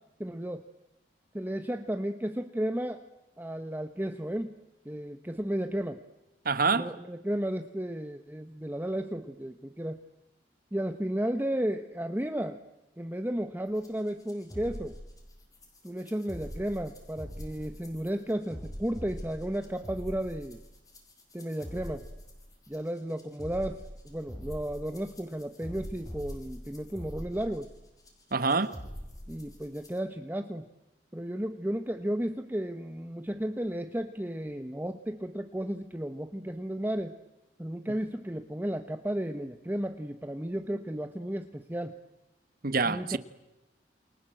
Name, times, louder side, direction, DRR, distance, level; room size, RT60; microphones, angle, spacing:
voice 1, 0.2-0.6 1.3-3.0 3.4-4.5 4.8-6.0 6.7-10.0 10.7-12.6 13.0-15.0 15.8-20.6 21.3-22.1 22.7-23.8 24.0-27.7 29.3-30.7 31.1-37.1 37.6-41.9 42.8-43.2, right 1 dB, 10° right, 1.1 m, -33 dB
voice 2, 6.4-6.9 28.3-28.7 42.6-43.2, right 4 dB, 55° right, 1.4 m, -26 dB
sound 1, 13.8-30.0, equal, 20° left, 4.9 m, -44 dB
29.0 x 26.5 x 7.7 m
head